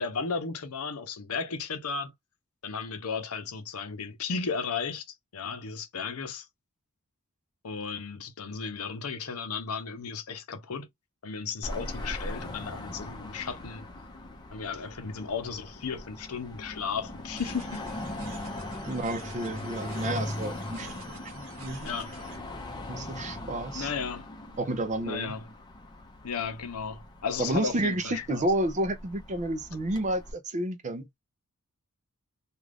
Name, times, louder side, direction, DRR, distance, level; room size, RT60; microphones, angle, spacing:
voice 1, 0.0-2.1 2.6-5.1 5.3-6.5 7.6-10.9 11.2-13.9 14.5-17.8 21.8-22.2 23.7-24.2 25.0-25.4 26.2-28.4, left 5 dB, 75° left, 0.7 m, -34 dB
Car passing by / Traffic noise roadway noise / Engine, 11.6-30.3, left 1 dB, 20° left, 0.6 m, -40 dB
sound 1, 17.4-22.4, right 3 dB, 65° right, 1.0 m, -48 dB
voice 2, 18.9-21.9 22.8-23.9 24.6-25.3 27.4-31.1, right 1 dB, 35° right, 0.5 m, -31 dB
2.5 x 2.4 x 3.3 m
head